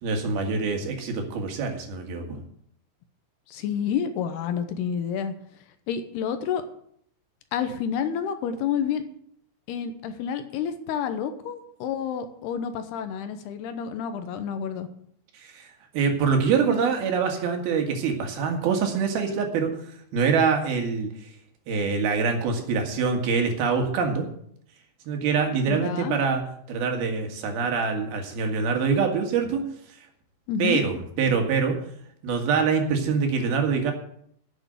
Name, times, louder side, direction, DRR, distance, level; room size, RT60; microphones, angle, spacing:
voice 1, 0.0-2.4 15.3-19.8 20.1-21.1 21.7-24.3 25.1-26.4 26.7-29.6 30.6-31.8 32.2-33.9, right 5 dB, 65° right, 4 dB, 3.5 m, -25 dB
voice 2, 3.5-5.3 5.9-6.6 7.5-9.0 9.7-14.9 25.7-26.2 30.5-30.8, left 8 dB, 75° left, 9 dB, 2.8 m, -29 dB
10.5 x 7.1 x 9.1 m, 0.67 s
omnidirectional pair, 5.0 m